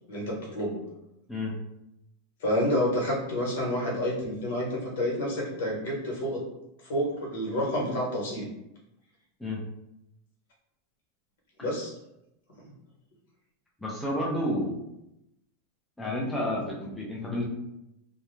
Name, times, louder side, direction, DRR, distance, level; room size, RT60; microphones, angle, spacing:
voice 1, 0.1-0.8 2.4-6.4 6.8-8.4 11.6-11.9, equal, 75° left, -2 dB, 1.1 m, -29 dB
voice 2, 13.8-14.8 16.0-17.4, left 1 dB, 5° left, -5 dB, 0.5 m, -30 dB
2.3 x 2.0 x 3.0 m, 0.85 s
supercardioid pair, 155°, 0 cm